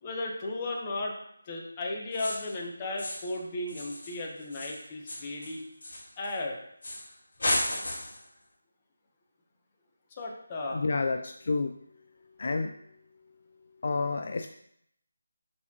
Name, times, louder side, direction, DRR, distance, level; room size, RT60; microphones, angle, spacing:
voice 1, 0.0-1.1 1.5-5.6 6.2-6.6 10.2-10.8, left 2 dB, 20° left, -1 dB, 0.9 m, -35 dB
sound 1, 2.1-2.6 3.0-3.4 3.7-6.4 6.8-7.1 7.4-8.3, left 1 dB, 65° left, 2.5 m, -34 dB
voice 2, 10.7-11.7 12.4-12.7 13.8-14.5, left 3 dB, 45° left, 6 dB, 0.4 m, -29 dB
10.5 x 4.2 x 2.9 m, 0.73 s
figure-of-eight pair, 175°, 0 cm